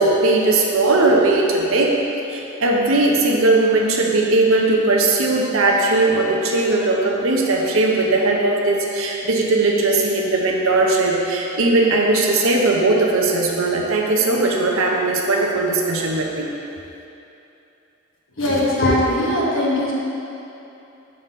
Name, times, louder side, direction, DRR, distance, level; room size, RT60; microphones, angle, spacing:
voice 1, 0.0-2.0 2.3-16.5, right 2 dB, 75° right, -1 dB, 0.6 m, -18 dB
voice 2, 18.4-19.9, left 1 dB, 65° left, -5 dB, 1.1 m, -19 dB
5.5 x 3.8 x 5.4 m, 2.9 s
head